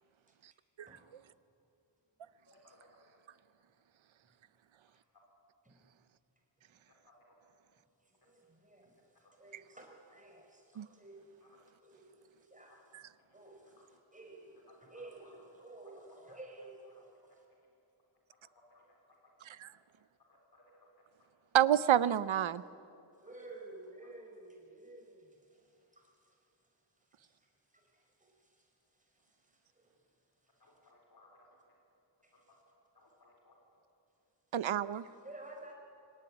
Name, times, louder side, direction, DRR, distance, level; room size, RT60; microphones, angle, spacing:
voice 1, 2.5-2.8 3.1-3.2 6.9-7.4 11.4-11.5 12.7-12.8 13.8-13.9 14.9-15.4 17.0-17.1 18.6-18.8 20.3-20.6 30.6-31.7 32.3-32.4 32.9-33.6, left 2 dB, 50° left, -1 dB, 4.1 m, -64 dB
voice 2, 8.0-13.0 13.3-16.9 17.3-17.4 23.2-26.4 27.0-30.0 30.6-30.8 32.2-32.6 35.2-35.7, right 2 dB, 15° right, 0 dB, 4.9 m, -54 dB
voice 3, 21.5-22.6 34.5-35.1, right 11 dB, 75° right, 17 dB, 0.7 m, -28 dB
24.5 x 18.0 x 9.8 m, 2.7 s
wide cardioid pair, 155°, 47 cm